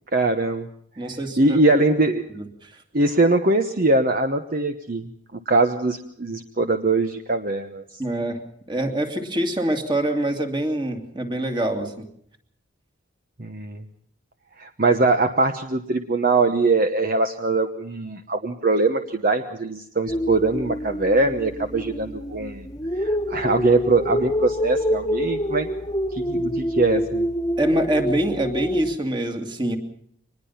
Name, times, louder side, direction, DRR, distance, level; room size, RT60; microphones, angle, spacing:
voice 1, 0.1-0.7 1.0-2.2 2.9-5.1 5.5-8.0 13.4-13.8 14.6-22.7 22.9-25.7 26.1-27.3, right 2 dB, 45° right, 7 dB, 1.1 m, -22 dB
voice 2, 1.0-1.6 2.4-2.8 8.0-8.4 8.7-12.1 27.6-29.8, right 1 dB, 25° right, 5 dB, 2.4 m, -25 dB
sound 1, 20.1-28.9, equal, 20° left, 1.5 m, -27 dB
24.0 x 20.5 x 5.8 m, 0.66 s
head